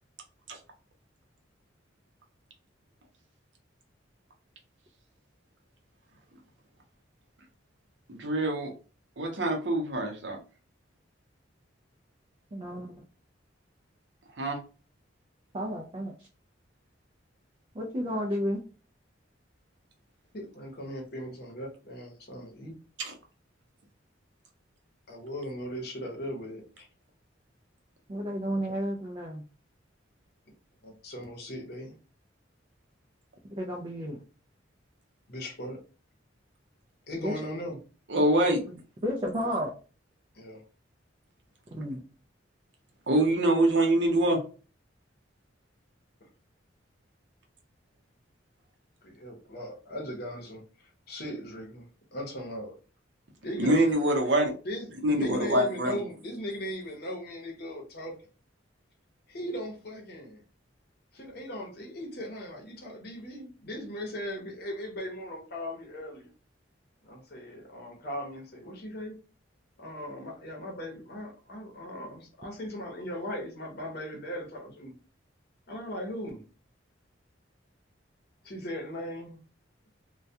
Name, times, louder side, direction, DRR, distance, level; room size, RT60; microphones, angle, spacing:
voice 1, 8.1-8.7 9.2-10.4 14.4-14.6 23.0-23.1 38.1-38.6 43.1-44.4 53.6-54.5 55.0-56.0, right 1 dB, 65° right, 0.7 m, -25 dB
voice 2, 12.5-12.9 15.5-16.3 17.7-18.6 28.1-29.4 33.5-34.2 37.2-37.4 38.7-39.7 41.7-42.0, equal, 30° right, 0.3 m, -32 dB
voice 3, 20.3-22.8 25.1-26.9 30.8-31.9 35.3-35.8 37.1-37.8 40.3-40.6 49.0-52.7 53.4-54.1 54.6-58.1 59.3-60.4 61.1-66.3 67.0-69.2 69.8-74.9 75.7-76.4 78.4-79.4, equal, 55° left, 0.8 m, -38 dB
2.2 x 2.2 x 2.7 m
head